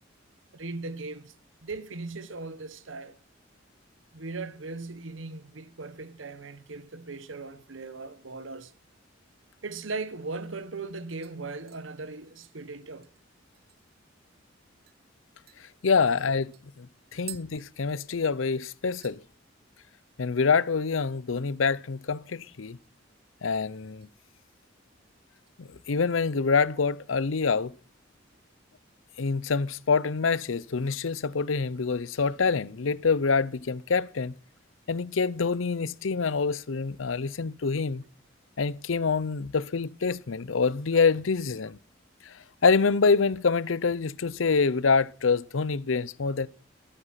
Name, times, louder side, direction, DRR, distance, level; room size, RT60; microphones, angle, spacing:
voice 1, 0.5-1.3 1.6-3.2 4.1-8.7 9.6-13.1 17.2-17.3, right 3 dB, 80° right, 1.3 m, -38 dB
sound 1, 11.2-14.1 14.4-14.5 14.9-15.0 15.5-18.5 18.7-19.2 19.6-20.0 20.2-20.3 22.4-23.1 23.4-24.1 24.5-24.8 25.4-26.3 26.6-26.7, right 14 dB, 55° right, 1.2 m, -51 dB
voice 2, 15.8-16.9 17.1-19.2 20.2-22.8 23.4-24.1 25.6-27.7 29.2-34.3 34.9-38.0 38.6-41.8 42.2-42.3 42.6-46.5, left 5 dB, 85° left, 0.7 m, -26 dB
13.5 x 13.0 x 5.8 m
head